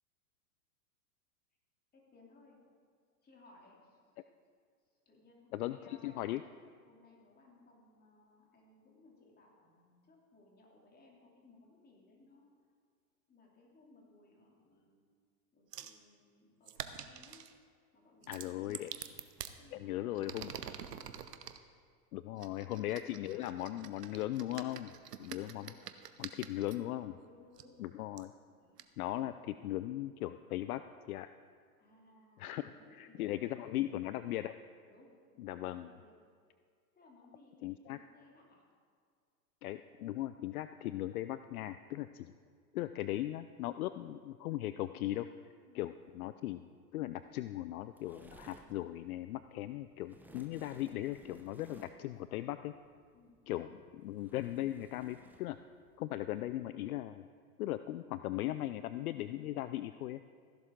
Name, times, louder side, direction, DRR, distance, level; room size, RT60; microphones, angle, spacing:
voice 1, 1.9-2.6 3.2-4.0 5.0-6.3 6.9-12.5 13.3-15.0 15.5-17.5 17.9-19.0 19.5-21.3 22.3-22.8 25.5-25.8 27.1-27.7 28.5-28.8 31.8-34.1 34.9-36.1 36.9-38.6 45.7-45.9 53.1-53.4, left 2 dB, 20° left, -2 dB, 2.9 m, -62 dB
voice 2, 5.5-6.4 18.3-18.9 19.7-20.5 22.1-24.9 25.2-25.7 26.2-27.1 27.8-28.3 29.0-30.8 31.1-31.3 32.4-34.5 35.4-35.9 37.6-38.0 39.6-42.3 42.7-45.3 45.7-52.7 53.5-55.6 56.0-57.3 57.6-60.2, left 14 dB, 65° left, 12 dB, 0.5 m, -38 dB
sound 1, 15.7-16.0 16.7-17.5 18.2-19.6 20.1-21.6 22.4-26.8 27.6-27.7 28.2-28.3 28.8-28.9, right 9 dB, 80° right, 0.9 m, -46 dB
sound 2, 47.2-56.6, right 2 dB, 5° right, 0.9 m, -61 dB
15.0 x 11.5 x 3.7 m, 2.1 s
hypercardioid pair, 105°, 47 cm